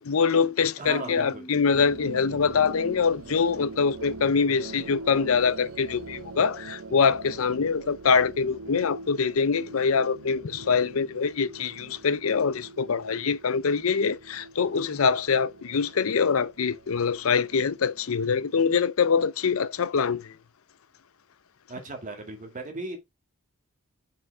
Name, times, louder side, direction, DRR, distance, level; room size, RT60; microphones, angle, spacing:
voice 1, 0.0-20.4, left 5 dB, 70° left, 0.6 m, -24 dB
voice 2, 0.8-1.6 21.7-23.0, right 2 dB, 40° right, 2.0 m, -37 dB
sound 1, 0.9-6.0, right 1 dB, 20° left, 2.6 m, -48 dB
sound 2, 1.7-18.1, right 3 dB, 80° right, 0.7 m, -43 dB
5.7 x 5.2 x 4.7 m
head